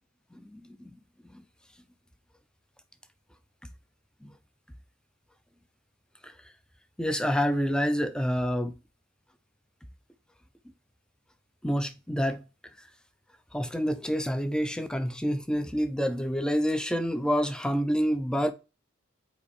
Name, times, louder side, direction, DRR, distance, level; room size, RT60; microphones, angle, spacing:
voice 1, 0.3-1.0 1.3-1.4 4.2-4.3 6.2-6.3 7.0-8.8 11.6-12.4 13.5-18.5, equal, 5° left, 0.4 m, -28 dB
5.9 x 4.3 x 4.2 m
head